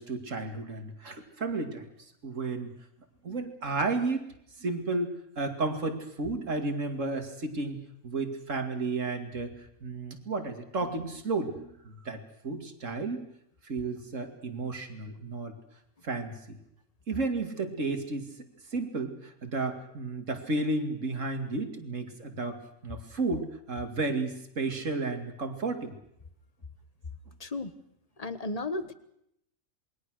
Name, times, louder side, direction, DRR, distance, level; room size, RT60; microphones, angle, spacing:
voice 1, 0.0-1.9 2.2-2.7 3.2-4.2 4.6-5.1 5.4-13.2 13.6-15.5 16.0-16.6 17.1-18.3 18.7-26.0, right 3 dB, 70° right, 6 dB, 2.8 m, -32 dB
voice 2, 27.4-27.7 28.2-28.9, left 2 dB, 30° left, 12 dB, 1.3 m, -34 dB
27.5 x 21.0 x 6.5 m, 0.76 s
omnidirectional pair, 1.3 m